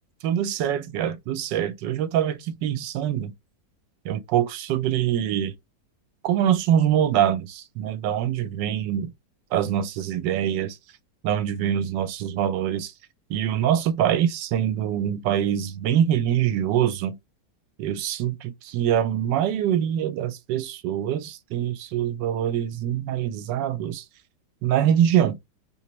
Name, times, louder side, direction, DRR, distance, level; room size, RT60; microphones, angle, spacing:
voice 1, 0.2-3.3 4.0-5.5 6.2-9.1 9.5-10.8 11.2-12.9 13.3-17.2 17.8-24.0 24.6-25.4, right 10 dB, 80° right, 1.2 m, -24 dB
3.3 x 2.9 x 2.9 m
omnidirectional pair, 1.9 m